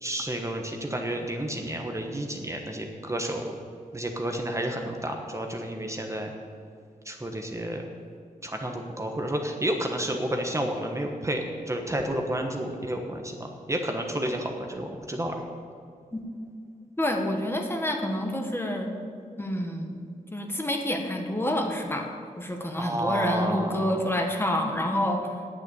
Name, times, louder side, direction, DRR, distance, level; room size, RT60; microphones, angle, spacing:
voice 1, 0.0-3.5 3.9-6.3 7.0-7.8 8.4-13.3 13.7-15.4 22.8-24.0, right 1 dB, 20° right, 2 dB, 1.2 m, -30 dB
voice 2, 17.0-18.9 19.4-20.0 20.3-22.1 22.4-25.3, left 1 dB, 15° left, 3 dB, 1.4 m, -28 dB
8.8 x 7.9 x 8.4 m, 2.3 s
cardioid pair, 75°, 15 cm